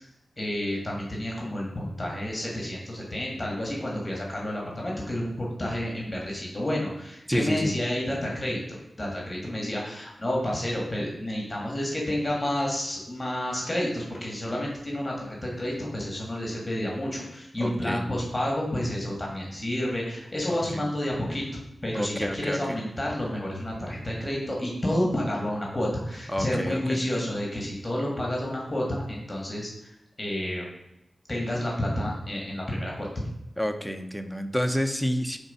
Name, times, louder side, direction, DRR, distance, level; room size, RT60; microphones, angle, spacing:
voice 1, 0.4-8.6 9.0-29.9 30.2-30.7 31.3-33.1, left 1 dB, 25° left, -2 dB, 1.6 m, -30 dB
voice 2, 7.3-7.7 17.6-18.0 20.7-20.8 21.9-22.8 26.3-27.0 33.6-35.4, equal, ahead, 7 dB, 0.6 m, -29 dB
5.4 x 3.5 x 5.4 m, 0.87 s
cardioid pair, 60°, 0 cm